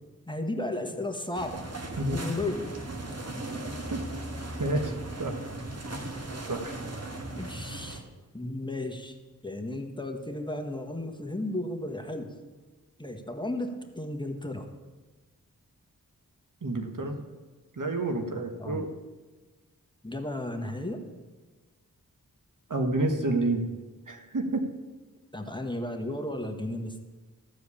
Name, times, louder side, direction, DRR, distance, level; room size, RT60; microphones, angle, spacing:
voice 1, 0.3-1.7 2.1-2.7 6.1-6.2 7.4-8.0 8.3-9.2 9.4-12.3 13.0-14.7 18.6-18.9 20.0-21.0 25.3-27.0, left 1 dB, 15° left, 4 dB, 1.4 m, -34 dB
sound 1, 1.3-8.0, right 2 dB, 45° right, 1.7 m, -37 dB
voice 2, 4.6-4.9 5.2-5.3 6.5-6.8 16.6-17.2 17.8-18.9 22.7-23.6 24.1-24.7, right 2 dB, 60° right, 4 dB, 1.5 m, -29 dB
14.5 x 4.9 x 8.4 m, 1.3 s
cardioid pair, 45°, 35 cm